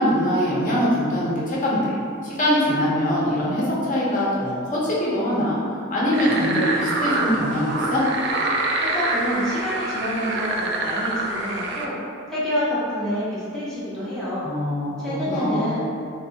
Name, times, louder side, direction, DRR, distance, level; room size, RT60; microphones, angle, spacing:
voice 1, 0.0-2.0 2.2-5.6 5.9-8.0 14.4-14.9 15.3-15.7, equal, 40° left, -7 dB, 0.7 m, -22 dB
sound 1, 6.1-11.9, right 2 dB, 60° right, 0.4 m, -26 dB
voice 2, 8.8-12.0 12.3-14.5 15.0-15.8, equal, ahead, -11 dB, 0.5 m, -27 dB
3.5 x 2.5 x 2.8 m, 2.3 s
head